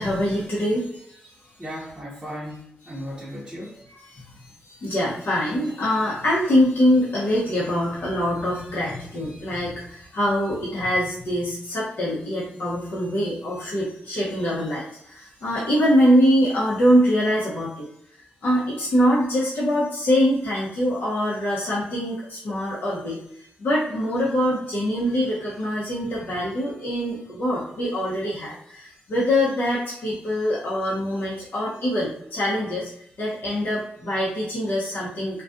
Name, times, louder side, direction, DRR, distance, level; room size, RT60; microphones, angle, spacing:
voice 1, 0.0-1.5 3.7-17.9 18.4-32.9 33.2-35.4, equal, 60° left, -8 dB, 0.8 m, -24 dB
voice 2, 1.6-3.8, equal, 10° right, -7 dB, 0.8 m, -36 dB
2.3 x 2.3 x 2.5 m, 0.73 s
cardioid pair, 65°, 4 cm